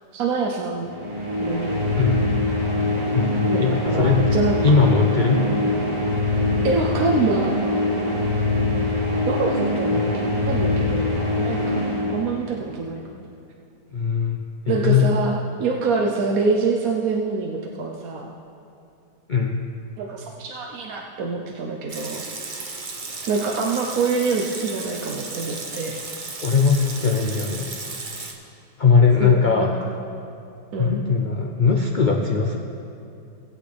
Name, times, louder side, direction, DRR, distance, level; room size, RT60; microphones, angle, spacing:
voice 1, 0.1-0.9 1.4-2.0 3.5-4.6 5.4-5.6 6.6-7.6 9.3-13.2 14.7-18.3 20.0-22.7 23.3-26.0 29.2-29.7 30.7-31.0, right 4 dB, 65° right, 0 dB, 1.2 m, -26 dB
sound 1, 0.9-12.7, left 2 dB, 85° right, 3.2 m, -23 dB
voice 2, 3.1-4.3 4.6-5.4 10.0-10.2 13.9-15.1 19.3-19.6 26.4-27.7 28.8-29.7 30.8-32.6, left 5 dB, 85° left, 1 dB, 0.4 m, -20 dB
Water tap faucet / Sink (filling or washing) / Liquid, 21.9-28.3, right 3 dB, 35° right, 0.9 m, -34 dB
19.0 x 8.4 x 3.4 m, 2.6 s
omnidirectional pair, 1.8 m